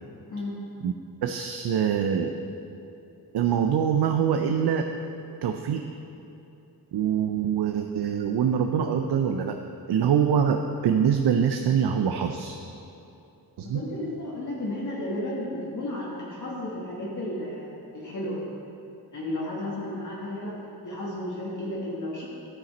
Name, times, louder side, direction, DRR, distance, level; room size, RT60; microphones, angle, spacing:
voice 1, 1.2-2.3 3.3-4.9 5.4-5.8 6.9-9.6 9.9-12.6 13.6-13.8, right 8 dB, 80° right, 5 dB, 0.5 m, -24 dB
voice 2, 13.6-18.4 19.1-22.3, left 1 dB, 50° left, -6 dB, 1.5 m, -33 dB
13.0 x 5.9 x 4.1 m, 2.8 s
wide cardioid pair, 155°, 39 cm